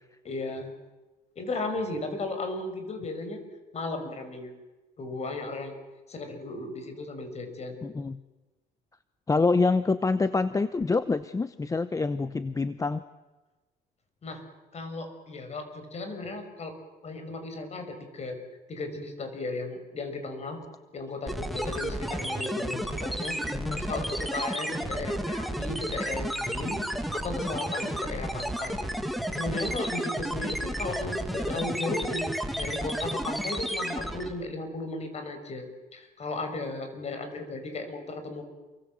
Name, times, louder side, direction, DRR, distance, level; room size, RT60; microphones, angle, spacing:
voice 1, 0.2-0.7 1.4-3.4 3.7-4.5 5.0-5.7 6.1-7.8 14.2-14.4 14.7-16.7 17.0-18.4 18.7-20.6 20.9-28.8 29.3-35.7 35.9-38.4, left 2 dB, 40° left, 7 dB, 6.0 m, -35 dB
voice 2, 7.8-8.2 9.3-13.0 23.5-23.8, left 3 dB, 20° left, 13 dB, 0.9 m, -26 dB
sound 1, 21.3-34.4, equal, ahead, 2.2 m, -32 dB
28.5 x 23.5 x 7.7 m, 1.2 s
cardioid pair, 110°, 17 cm